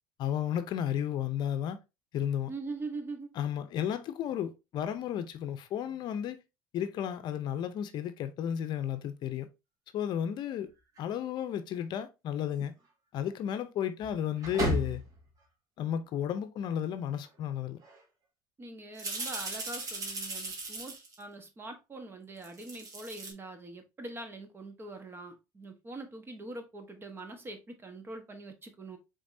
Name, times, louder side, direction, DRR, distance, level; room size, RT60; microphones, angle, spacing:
voice 1, 0.2-1.8 2.1-2.5 3.4-6.4 6.7-9.5 9.9-10.7 11.0-12.7 13.1-15.0 15.8-17.8, left 9 dB, 55° left, 0.7 m, -33 dB
voice 2, 2.5-3.3 18.6-29.0, right 2 dB, 25° right, 1.2 m, -43 dB
sound 1, 11.0-11.1 12.6-12.7 14.0-15.2 17.2-17.3 17.8-18.0 19.0-21.2 22.4-23.3, right 1 dB, 40° right, 1.8 m, -35 dB
5.1 x 3.7 x 2.7 m
supercardioid pair, 95°, 9 cm